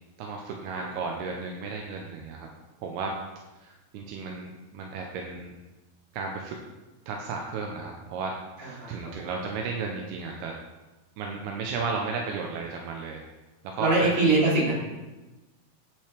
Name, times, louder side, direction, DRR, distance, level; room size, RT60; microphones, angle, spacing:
voice 1, 0.2-2.5 2.8-3.1 3.6-5.5 6.1-6.6 7.1-8.3 8.6-10.5 11.2-13.2 13.8-14.1, right 4 dB, 80° right, 1 dB, 2.4 m, -34 dB
voice 2, 8.6-9.3 13.8-14.7, right 2 dB, 40° right, -7 dB, 4.0 m, -24 dB
8.8 x 8.8 x 3.3 m, 1.1 s
omnidirectional pair, 5.2 m